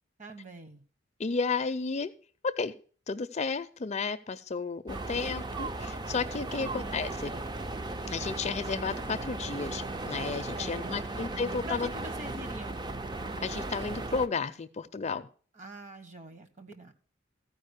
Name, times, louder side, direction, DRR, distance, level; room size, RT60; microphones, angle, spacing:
voice 1, 0.2-0.8 6.6-7.0 10.5-11.2 11.6-12.8 15.5-16.9, right 1 dB, 40° right, 8 dB, 1.3 m, -45 dB
voice 2, 1.2-2.1 2.4-2.7 3.1-7.3 8.1-11.9 13.4-15.3, left 4 dB, 35° left, 11 dB, 0.4 m, -32 dB
sound 1, 4.9-14.3, right 2 dB, 20° right, 0.4 m, -36 dB
14.5 x 4.9 x 6.4 m, 0.42 s
head